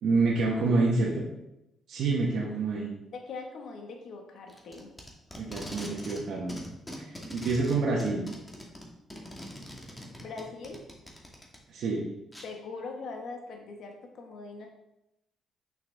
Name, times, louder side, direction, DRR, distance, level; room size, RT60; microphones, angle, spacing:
voice 1, 0.0-1.2 1.9-2.9 5.4-6.6 7.1-8.2 11.7-12.0, right 3 dB, 70° right, -4 dB, 1.2 m, -27 dB
voice 2, 3.1-4.9 10.2-10.8 12.4-14.7, left 4 dB, 70° left, 2 dB, 1.4 m, -41 dB
Packing tape duct tape, 4.5-6.2 6.5-11.6 12.3-12.5, left 1 dB, 15° left, 1.4 m, -42 dB
6.0 x 6.0 x 3.4 m, 0.88 s
cardioid pair, 90°, 0 cm